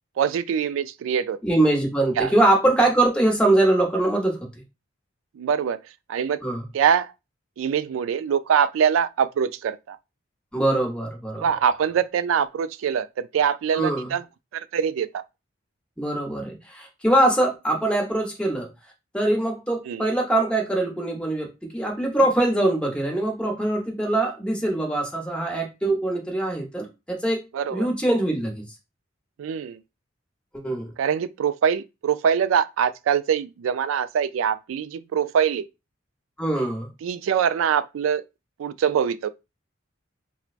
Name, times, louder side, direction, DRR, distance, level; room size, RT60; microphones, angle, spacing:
voice 1, 0.2-1.4 2.2-2.3 5.4-5.8 6.1-6.4 6.7-7.1 7.6-10.0 11.4-14.2 14.5-15.2 19.9-20.1 27.5-27.9 29.4-29.8 31.0-35.6 37.0-38.2 38.6-39.3, right 7 dB, 85° right, 0.3 m, -23 dB
voice 2, 1.4-4.4 6.4-6.6 10.5-11.4 13.7-14.1 16.0-18.7 19.1-27.4 27.7-28.6 30.5-30.9 36.4-36.9, right 1 dB, 5° left, 0.8 m, -23 dB
4.4 x 2.1 x 2.4 m
head